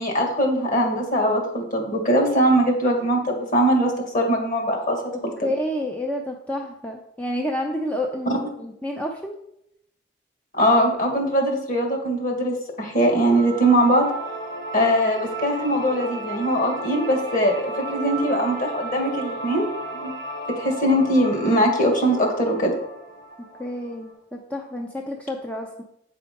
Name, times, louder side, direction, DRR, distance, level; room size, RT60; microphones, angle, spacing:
voice 1, 0.0-5.0 5.4-5.5 10.5-14.1 14.7-19.7 19.9-20.1 20.5-22.8, equal, 45° left, 2 dB, 2.0 m, -21 dB
voice 2, 5.1-8.3 8.6-9.4 23.6-25.8, left 1 dB, 5° left, 1 dB, 0.6 m, -29 dB
sound 1, 13.1-24.1, right 2 dB, 65° left, 3.5 m, -34 dB
8.7 x 4.8 x 5.3 m, 0.79 s
head